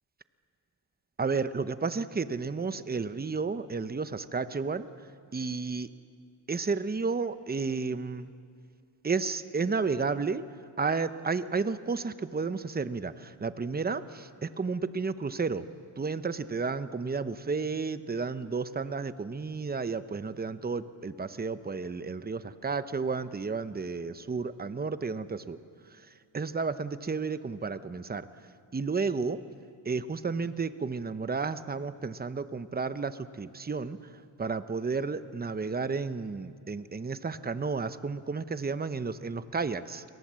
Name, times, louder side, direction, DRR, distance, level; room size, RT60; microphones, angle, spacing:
voice 1, 1.2-4.9 5.3-5.9 6.5-8.3 9.0-10.4 10.8-15.6 16.0-25.6 25.9-26.0 26.3-28.3 28.7-29.4 29.8-34.0 34.4-40.0, right 4 dB, 20° right, 12 dB, 0.9 m, -32 dB
29.5 x 22.5 x 7.6 m, 2.3 s
cardioid pair, 105°, 47 cm